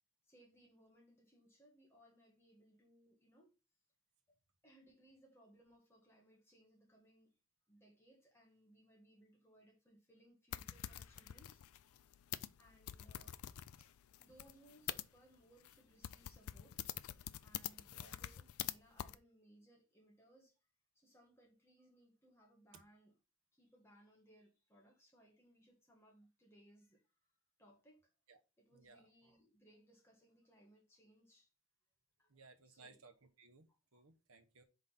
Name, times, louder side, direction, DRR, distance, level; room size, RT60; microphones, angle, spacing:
voice 1, 0.2-3.5 4.3-4.4 4.6-7.3 7.7-12.1 12.6-13.4 13.8-16.9 17.4-20.6 21.0-23.1 23.5-27.3 27.6-28.1 28.6-31.5 32.2-32.3 32.6-33.0 33.9-34.0, right 1 dB, 10° left, 1.7 m, -67 dB
sound 1, 10.5-15.0 15.6-15.8 16.0-18.7 19.0-19.2, left 11 dB, 75° left, 0.4 m, -46 dB
voice 2, 28.7-29.1 32.3-34.6, right 3 dB, 70° right, 1.0 m, -62 dB
5.2 x 4.0 x 5.6 m
head